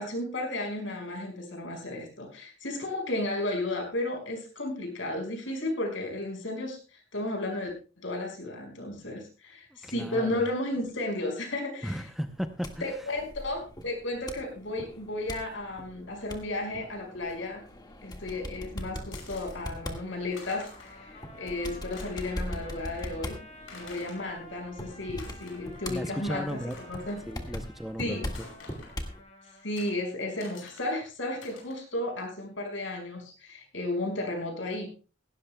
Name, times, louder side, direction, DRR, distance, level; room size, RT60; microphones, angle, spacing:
voice 1, 0.0-7.7 8.0-12.0 12.8-17.6 18.0-23.4 23.7-26.6 26.9-27.2 28.0-28.3 29.6-34.9, left 2 dB, 70° left, 3 dB, 5.2 m, -33 dB
voice 2, 9.8-10.4 11.8-13.1 25.9-26.8 27.3-28.5, equal, ahead, 7 dB, 0.6 m, -35 dB
sound 1, 12.2-29.2, left 1 dB, 20° left, 1.7 m, -42 dB
sound 2, 19.1-19.6 20.1-20.2 20.3-21.0 21.4-21.5 21.8-22.5 22.9-23.0 23.7-24.2 24.9-25.9 26.1-26.2 26.7-27.2 28.3-29.0 29.8-29.9 30.4-30.9 31.4-31.8, left 3 dB, 85° left, 5.6 m, -48 dB
Trumpet, 20.7-29.7, left 1 dB, 35° left, 4.4 m, -51 dB
17.5 x 17.0 x 2.2 m, 0.34 s
head